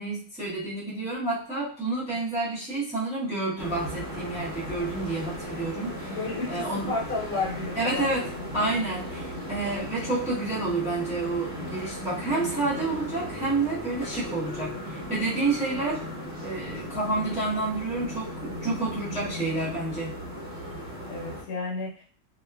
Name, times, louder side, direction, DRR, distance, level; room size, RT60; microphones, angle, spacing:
voice 1, 0.0-6.2 6.5-6.9 7.7-16.0 16.4-20.1, right 2 dB, 5° right, -9 dB, 0.5 m, -29 dB
sound 1, 3.6-21.4, equal, 50° right, 0.9 m, -37 dB
voice 2, 6.1-8.5 21.1-22.0, left 3 dB, 70° left, -2 dB, 1.1 m, -32 dB
2.8 x 2.4 x 2.2 m, 0.41 s
omnidirectional pair, 1.7 m